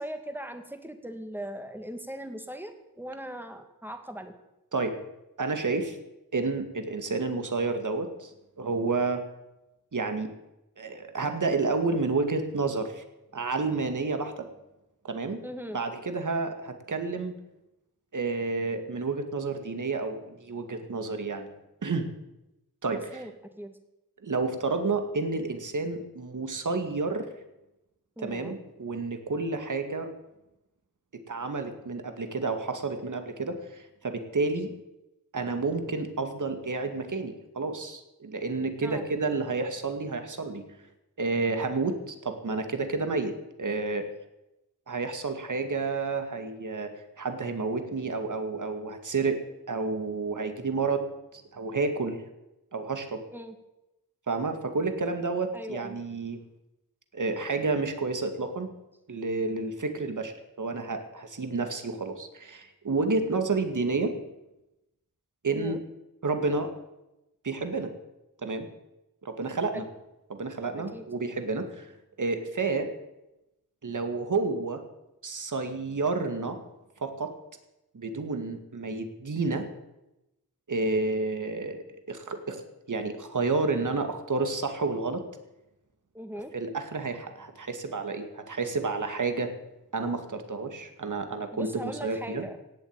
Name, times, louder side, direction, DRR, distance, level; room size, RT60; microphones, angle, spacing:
voice 1, 0.0-4.4 15.4-15.8 22.9-23.3 23.6-23.8 28.2-28.6 38.8-39.0 53.3-53.6 55.5-56.0 65.5-65.8 69.7-69.9 70.8-71.0 86.1-86.5 91.5-92.6, equal, 5° right, 6 dB, 2.2 m, -39 dB
voice 2, 5.4-6.0 6.3-8.3 8.6-9.2 9.9-10.3 10.8-13.0 13.3-14.5 15.0-15.4 15.7-17.3 18.1-21.5 21.8-22.1 22.8-23.2 24.2-27.3 28.2-30.1 31.3-34.7 35.3-40.6 41.2-43.3 43.6-44.1 44.9-49.4 49.7-52.2 52.7-53.2 54.3-56.4 57.1-58.7 59.1-64.1 65.4-65.8 66.2-66.7 67.4-67.9 68.4-68.7 69.2-69.8 70.3-71.9 72.2-72.9 73.8-74.8 75.2-76.6 77.0-77.3 77.9-79.7 80.7-85.2 86.5-89.5 89.9-92.4, right 3 dB, 50° right, 7 dB, 2.2 m, -30 dB
17.5 x 7.7 x 8.9 m, 0.94 s
wide cardioid pair, 75°, 38 cm